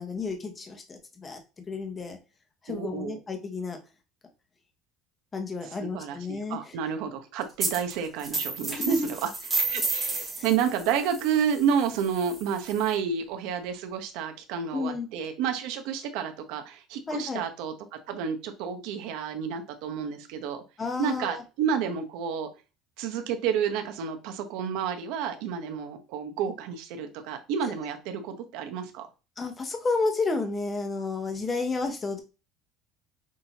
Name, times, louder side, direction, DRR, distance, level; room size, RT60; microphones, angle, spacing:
voice 1, 0.0-1.4 1.7-2.2 2.6-3.8 5.3-6.7 8.8-9.1 9.7-10.5 14.7-15.1 17.1-17.4 20.8-21.4 29.4-32.2, left 3 dB, 20° left, 4 dB, 0.9 m, -31 dB
voice 2, 2.7-3.2 5.6-9.3 9.7-17.7 18.1-20.6 21.0-22.5 23.0-29.1, right 7 dB, 70° right, 5 dB, 0.9 m, -30 dB
sound 1, 7.6-7.9 8.2-12.9, right 3 dB, 15° right, 1.5 m, -32 dB
6.0 x 2.8 x 2.9 m, 0.30 s
cardioid pair, 160°, 0 cm